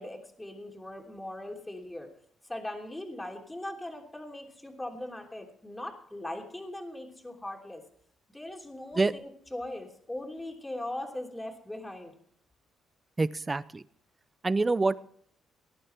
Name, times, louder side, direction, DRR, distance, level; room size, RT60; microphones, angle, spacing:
voice 1, 0.0-2.1 2.4-7.8 8.3-12.1, left 1 dB, 10° left, 1 dB, 3.2 m, -40 dB
voice 2, 13.2-13.8 14.4-15.0, right 3 dB, 25° right, 16 dB, 0.7 m, -26 dB
19.0 x 10.0 x 4.5 m, 0.65 s
cardioid pair, 90°, 0 cm